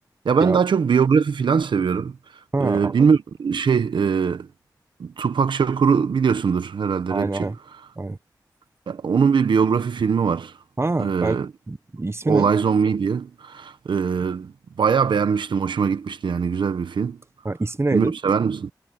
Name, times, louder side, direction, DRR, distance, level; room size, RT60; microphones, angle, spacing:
voice 1, 0.2-2.2 2.6-4.5 5.0-7.5 8.9-10.5 11.0-11.5 12.3-14.5 14.8-17.2 17.9-18.7, right 6 dB, 90° right, 1.2 m, -21 dB
voice 2, 2.5-2.9 7.1-7.6 8.0-8.2 10.8-11.4 11.7-12.5 17.4-18.1, right 2 dB, 35° right, 1.0 m, -25 dB
cardioid pair, 45°, 8 cm